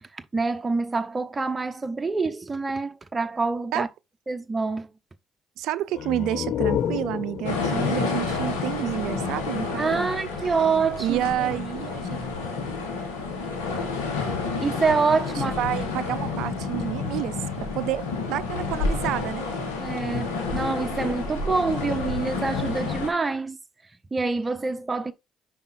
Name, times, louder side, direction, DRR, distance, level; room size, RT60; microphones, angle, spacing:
voice 1, 0.1-3.9 4.3-4.9 9.8-11.5 14.6-15.6 19.8-23.6 24.1-25.1, right 4 dB, 25° right, 0.8 m, -26 dB
voice 2, 5.6-10.1 11.0-12.2 15.6-19.5, right 13 dB, 75° right, 0.4 m, -29 dB
sound 1, 5.9-9.4, left 9 dB, 60° left, 0.7 m, -31 dB
sound 2, 7.4-23.1, left 4 dB, 85° left, 1.7 m, -29 dB
5.5 x 4.9 x 4.3 m
hypercardioid pair, 50°, 0 cm